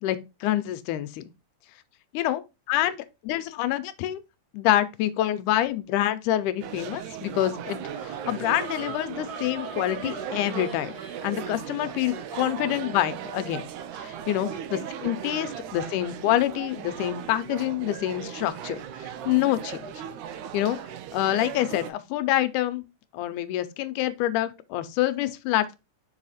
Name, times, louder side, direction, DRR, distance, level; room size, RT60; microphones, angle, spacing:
voice 1, 0.0-1.2 2.1-2.4 2.7-3.0 3.2-4.2 4.5-13.7 14.0-18.8 19.3-19.9 20.5-20.8 21.1-22.8 23.1-25.8, left 13 dB, 85° left, 2.1 m, -26 dB
sound 1, 6.6-21.9, right 9 dB, 75° right, 2.1 m, -37 dB
sound 2, 7.7-13.0, right 3 dB, 45° right, 1.3 m, -42 dB
5.6 x 4.8 x 4.0 m
omnidirectional pair, 3.6 m